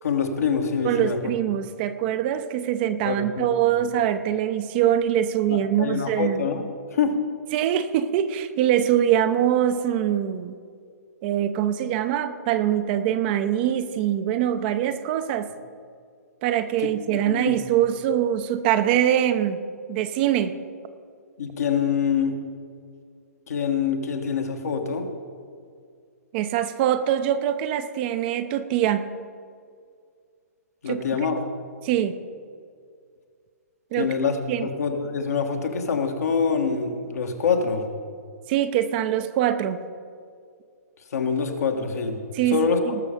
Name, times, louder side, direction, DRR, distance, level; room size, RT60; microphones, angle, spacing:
voice 1, 0.0-1.2 3.0-3.5 3.7-3.8 5.5-6.6 6.9-7.2 16.8-17.6 21.4-22.3 23.5-25.1 30.8-31.4 34.0-37.8 41.1-42.2 42.5-43.0, left 5 dB, 70° left, 4 dB, 1.6 m, -25 dB
voice 2, 0.8-6.5 7.5-10.6 11.2-15.5 16.4-19.6 19.9-20.6 26.3-29.1 30.9-31.0 31.8-32.2 33.9-34.1 34.5-34.7 38.5-39.8 42.3-42.9, right 10 dB, 35° right, 10 dB, 0.7 m, -23 dB
19.0 x 6.6 x 5.1 m, 2.2 s
figure-of-eight pair, 125°, 9 cm